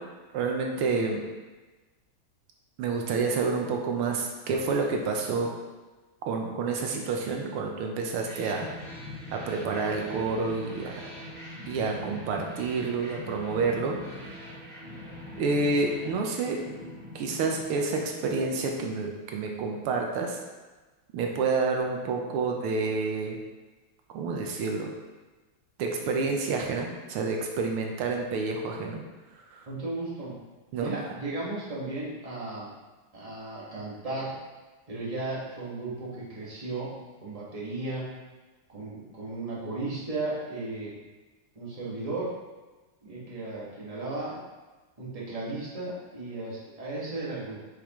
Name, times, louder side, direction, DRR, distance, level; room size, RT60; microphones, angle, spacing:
voice 1, 0.3-1.2 2.8-5.5 6.3-8.7 9.3-10.9 11.7-14.3 15.4-16.6 17.1-20.4 21.1-23.4 24.1-24.9 25.8-29.0 29.5-29.6 30.7-30.9, right 4 dB, 90° right, 1 dB, 1.8 m, -29 dB
sound 1, 8.2-18.8, left 1 dB, 65° right, 3.4 m, -42 dB
voice 2, 29.7-30.3 30.8-32.7 33.1-34.3 34.9-38.1 38.7-41.0 41.5-42.3 43.0-44.4 45.0-47.6, right 2 dB, 20° right, -7 dB, 1.6 m, -35 dB
8.6 x 5.1 x 3.1 m, 1.2 s
omnidirectional pair, 2.3 m